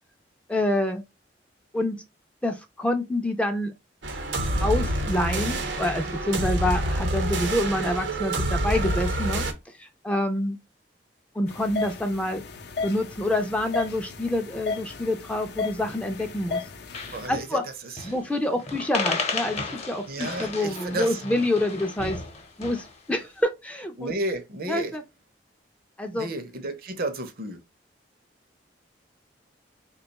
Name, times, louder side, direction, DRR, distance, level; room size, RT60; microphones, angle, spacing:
voice 1, 0.5-1.0 1.7-2.0 2.4-3.7 4.6-9.5 9.8-10.6 11.4-12.4 12.8-16.6 17.3-17.6 18.0-22.2 22.6-24.1 24.7-25.0 26.0-26.3, left 1 dB, 5° left, 0.4 m, -27 dB
sound 1, 4.0-9.5, right 1 dB, 90° right, 0.8 m, -27 dB
sound 2, 11.5-17.3, left 4 dB, 60° left, 0.5 m, -35 dB
sound 3, 15.8-16.3 16.6-16.7 16.9-17.5 18.0-18.3 18.6-23.0, left 4 dB, 35° left, 0.8 m, -34 dB
voice 2, 17.1-18.1 20.1-21.2 24.0-25.0 26.1-27.6, right 2 dB, 55° right, 0.6 m, -32 dB
3.5 x 2.3 x 4.0 m
head